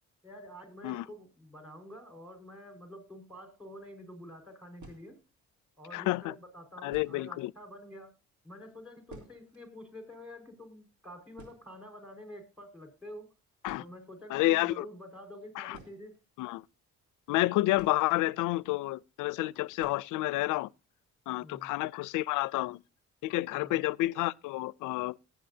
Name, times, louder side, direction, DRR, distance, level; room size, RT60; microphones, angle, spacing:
voice 1, 0.2-5.2 5.8-8.1 8.4-13.3 13.8-16.2 21.4-21.7 23.5-23.8, equal, 5° right, 5.0 m, -48 dB
sound 1, 4.8-5.4 6.3-6.4 6.9-7.4 7.7-7.8 8.0-8.2 8.6-9.7 9.9-10.0 10.3-10.6 10.9-11.0 11.3-12.3 13.2-13.3 13.6-14.2 15.7-16.8 17.7-18.5 18.8-18.9 19.8-20.2 20.5-20.6 21.0-21.1 21.5-21.9, right 2 dB, 70° right, 3.6 m, -54 dB
voice 2, 5.9-6.3 6.8-7.5 13.6-13.8 14.3-14.9 15.6-15.8 16.4-16.6 17.3-20.7 21.3-22.8 23.2-25.2, left 18 dB, 90° left, 0.5 m, -30 dB
19.0 x 8.2 x 2.7 m
cardioid pair, 90°, 30 cm